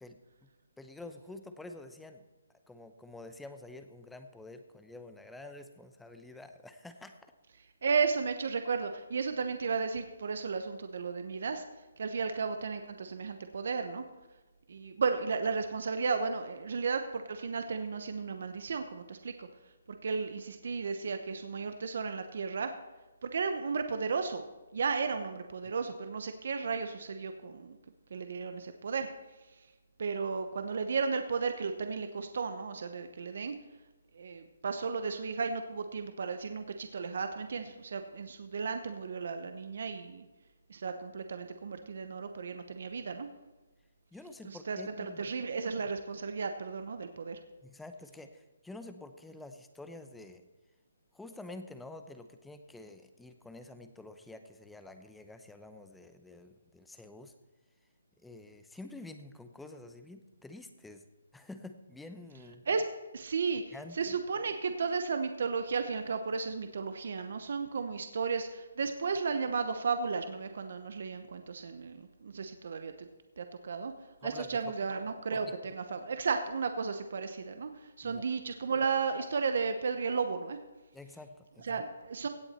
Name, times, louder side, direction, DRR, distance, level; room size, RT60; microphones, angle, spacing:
voice 1, 0.0-0.5 0.8-2.2 2.7-7.1 44.1-45.2 47.6-50.5 51.1-57.3 58.2-61.0 61.3-62.6 63.7-64.2 74.2-74.7 75.3-75.5 78.0-78.2 80.9-81.8, left 2 dB, 5° left, 7 dB, 0.7 m, -48 dB
voice 2, 7.8-11.6 12.0-14.0 14.7-19.5 20.0-22.7 23.2-24.5 24.7-27.8 28.1-29.1 30.0-33.5 34.1-40.2 40.7-43.3 44.4-47.4 62.7-62.8 63.1-72.9 73.4-73.9 74.2-80.6 81.6-82.3, right 5 dB, 60° right, 8 dB, 0.9 m, -34 dB
17.0 x 8.0 x 4.4 m, 1.1 s
hypercardioid pair, 155°, 0 cm